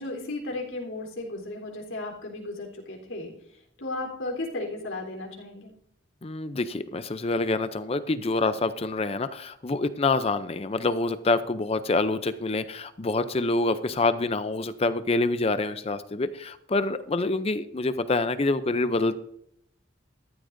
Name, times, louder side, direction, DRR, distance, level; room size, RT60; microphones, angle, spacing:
voice 1, 0.0-3.3 3.8-5.7, left 2 dB, 80° left, -1 dB, 3.7 m, -35 dB
voice 2, 6.2-19.2, left 3 dB, 30° left, 12 dB, 0.5 m, -26 dB
14.5 x 12.0 x 2.6 m, 0.71 s
head